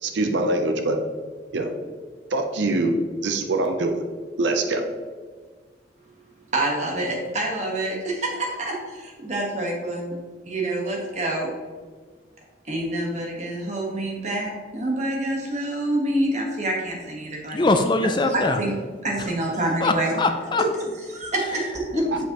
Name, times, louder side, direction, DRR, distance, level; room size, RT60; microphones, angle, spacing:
voice 1, 0.0-1.0 1.5-1.7 2.3-2.9 3.2-4.0 4.4-4.8, right 2 dB, 85° right, 5 dB, 0.6 m, -23 dB
voice 2, 6.5-10.2 10.4-11.5 12.7-17.6 18.3-18.7 19.0-20.2 20.8-22.3, right 1 dB, 40° right, -1 dB, 1.3 m, -27 dB
voice 3, 17.5-18.6 19.8-20.6 21.9-22.1, left 2 dB, 25° left, 6 dB, 0.4 m, -22 dB
7.5 x 5.2 x 3.0 m, 1.5 s
head